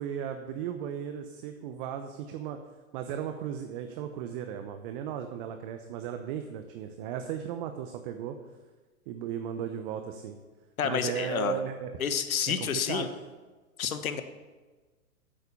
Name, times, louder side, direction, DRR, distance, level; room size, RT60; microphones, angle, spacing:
voice 1, 0.0-2.6 2.9-8.4 9.1-10.4 10.8-11.9 12.6-13.1, right 9 dB, 40° right, 7 dB, 0.9 m, -36 dB
voice 2, 10.8-11.6 12.0-13.1 13.8-14.2, left 7 dB, 75° left, 10 dB, 1.3 m, -29 dB
9.4 x 8.2 x 7.0 m, 1.3 s
hypercardioid pair, 120°, 42 cm